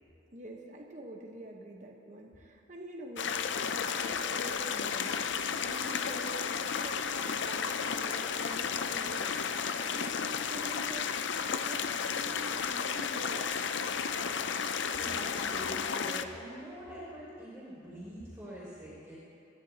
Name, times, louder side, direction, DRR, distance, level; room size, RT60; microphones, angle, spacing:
voice 1, 0.3-9.6 9.9-11.2 11.6-13.6, right 1 dB, 40° right, 0 dB, 1.2 m, -46 dB
sound 1, 3.2-16.2, left 6 dB, 70° left, 0.5 m, -33 dB
voice 2, 14.3-19.2, equal, 10° right, -11 dB, 3.7 m, -45 dB
27.5 x 10.5 x 2.9 m, 3.0 s
head